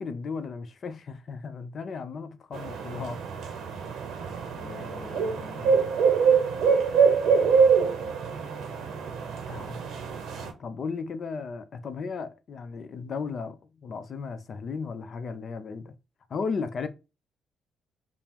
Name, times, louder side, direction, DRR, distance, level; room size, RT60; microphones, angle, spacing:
voice 1, 0.0-3.6 4.6-5.9 9.4-9.8 10.3-15.9 16.3-16.9, left 5 dB, 50° left, 0.5 m, -36 dB
sound 1, 2.5-10.5, right 6 dB, 80° right, 0.6 m, -25 dB
5.2 x 2.0 x 2.9 m
cardioid pair, 90°, 0 cm